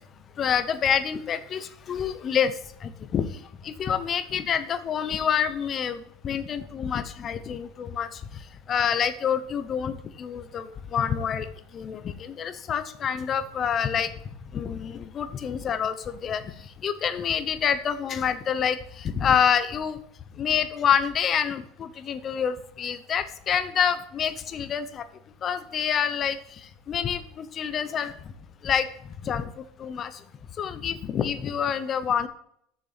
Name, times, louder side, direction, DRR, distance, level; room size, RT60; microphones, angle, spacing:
voice 1, 0.4-2.5 2.8-3.3 3.6-8.1 8.7-11.5 11.7-14.1 14.5-16.0 16.2-16.4 16.8-20.0 20.4-25.0 25.4-26.4 26.9-28.1 28.6-28.9 29.2-29.5 29.8-30.1 30.6-32.3, left 8 dB, 30° left, 12 dB, 0.8 m, -27 dB
6.9 x 6.7 x 5.1 m, 0.70 s
supercardioid pair, 145°, 0 cm